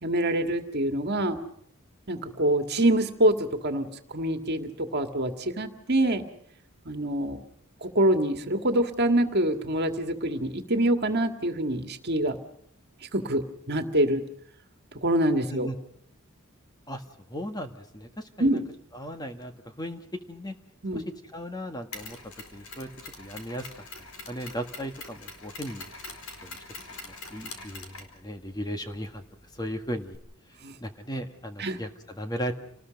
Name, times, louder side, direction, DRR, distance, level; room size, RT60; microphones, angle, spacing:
voice 1, 0.0-1.4 2.1-6.2 6.9-7.4 7.8-12.4 13.1-14.2 15.0-15.7 18.4-18.6 20.8-21.0 30.6-30.7 31.6-31.8, right 1 dB, 50° right, 6 dB, 2.0 m, -25 dB
voice 2, 17.3-18.6 18.9-20.6 20.9-22.2 22.5-23.7 24.0-25.9 26.4-26.6 26.9-29.2 29.5-30.2 30.5-32.5, equal, 20° left, 6 dB, 1.7 m, -37 dB
Mechanisms, 21.9-30.2, left 3 dB, 90° left, 4.4 m, -45 dB
29.5 x 19.5 x 5.3 m, 0.71 s
head